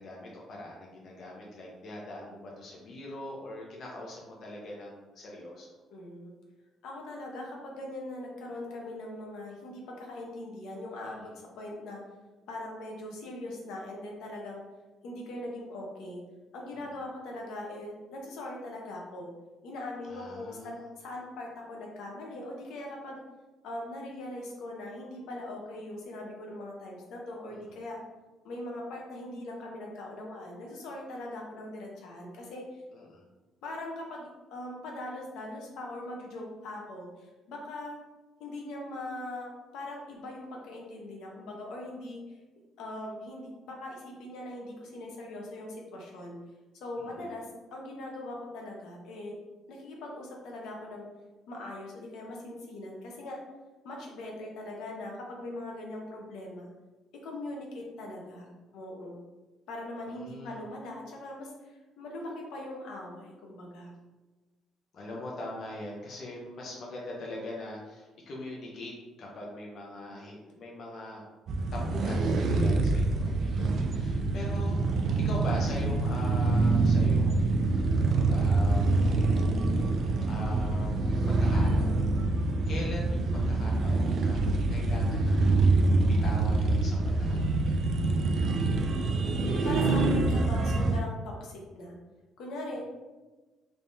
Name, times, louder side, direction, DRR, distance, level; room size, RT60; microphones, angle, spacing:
voice 1, 0.0-5.8 11.0-11.4 16.7-16.9 20.1-20.8 27.5-27.6 32.9-33.2 47.0-47.3 60.1-60.6 64.9-71.2 71.7-74.8 75.2-77.6 78.1-79.1 80.2-82.0 82.7-84.4 84.7-85.6 86.1-87.9, left 1 dB, 45° left, -3 dB, 0.6 m, -42 dB
voice 2, 5.9-6.3 6.8-11.3 11.6-12.0 12.5-14.6 15.0-16.2 16.5-19.3 19.6-23.2 23.6-28.0 28.4-32.8 33.6-38.0 38.4-42.4 42.8-46.3 46.7-49.4 49.7-51.1 51.5-53.4 53.8-56.7 57.2-58.5 58.7-59.2 59.7-63.9 88.6-89.0 89.6-91.9 92.4-92.8, left 1 dB, 75° left, -1 dB, 0.8 m, -41 dB
sound 1, 71.5-91.0, right 2 dB, 45° right, 0.3 m, -26 dB
3.4 x 3.3 x 2.7 m, 1.2 s
cardioid pair, 165°, 0 cm